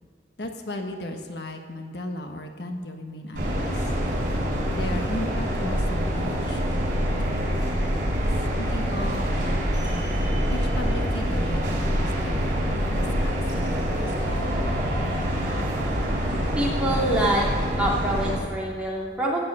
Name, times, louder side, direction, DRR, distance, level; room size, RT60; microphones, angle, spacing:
voice 1, 0.4-3.9 4.7-7.5 8.6-10.1 10.5-14.7, left 1 dB, 75° left, 4 dB, 1.3 m, -36 dB
sound 1, 3.4-18.4, equal, 50° right, 4.3 m, -25 dB
voice 2, 16.5-17.5 17.8-19.5, right 1 dB, 5° right, -5 dB, 2.7 m, -25 dB
17.0 x 7.6 x 6.7 m, 2.1 s
head